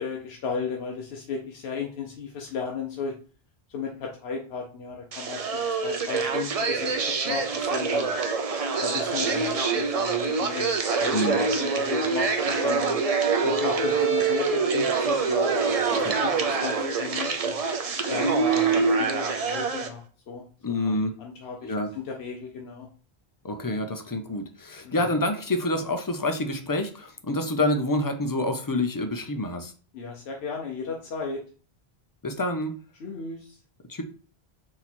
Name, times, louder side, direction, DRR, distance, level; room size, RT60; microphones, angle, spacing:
voice 1, 0.0-3.1 3.7-8.1 8.8-13.0 13.4-17.6 18.1-20.9 21.2-22.9 24.8-25.1 29.9-31.4 33.0-33.6, left 5 dB, 85° left, 0 dB, 1.0 m, -35 dB
sound 1, 5.1-19.9, right 4 dB, 45° right, 0.5 m, -25 dB
voice 2, 11.1-11.4 16.0-16.1 20.6-21.2 21.6-21.9 23.4-29.7 32.2-32.8 33.9-34.0, left 1 dB, 25° left, 6 dB, 0.5 m, -27 dB
4.2 x 2.9 x 4.2 m, 0.38 s
omnidirectional pair, 1.0 m